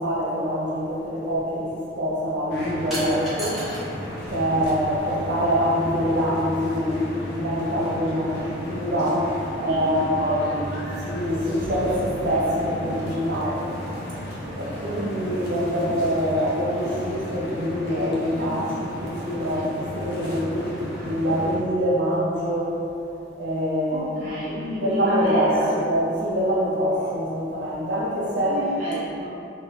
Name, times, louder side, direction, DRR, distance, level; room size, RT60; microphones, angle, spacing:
voice 1, 0.0-3.6 4.3-10.4 11.0-13.8 14.6-20.8 21.0-22.8 23.3-28.6, equal, 85° right, -6 dB, 0.7 m, -25 dB
sound 1, 2.5-21.6, equal, 75° left, 0.6 m, -34 dB
sound 2, 2.9-3.9 4.2-5.1, right 1 dB, ahead, 1.0 m, -34 dB
voice 2, 9.6-10.8 23.9-25.7 28.5-29.3, equal, 45° right, -13 dB, 0.6 m, -30 dB
3.3 x 2.2 x 3.4 m, 2.8 s
head